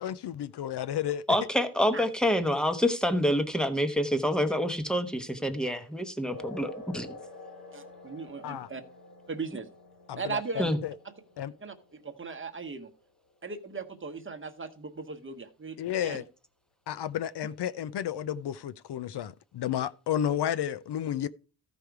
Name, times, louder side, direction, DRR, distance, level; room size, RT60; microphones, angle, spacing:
voice 1, 0.0-1.2 8.4-8.7 10.1-10.9 11.4-11.5 15.8-16.2 16.9-21.3, left 10 dB, 70° left, 0.6 m, -32 dB
voice 2, 1.3-7.2 10.6-10.8, equal, ahead, 1.0 m, -27 dB
sound 1, 6.3-13.3, left 2 dB, 50° left, 2.1 m, -48 dB
voice 3, 7.7-8.8 9.3-9.7 10.1-10.6 11.6-11.7 12.0-12.9 13.4-16.2, right 4 dB, 30° right, 1.1 m, -38 dB
14.0 x 5.2 x 4.7 m
wide cardioid pair, 130°, 43 cm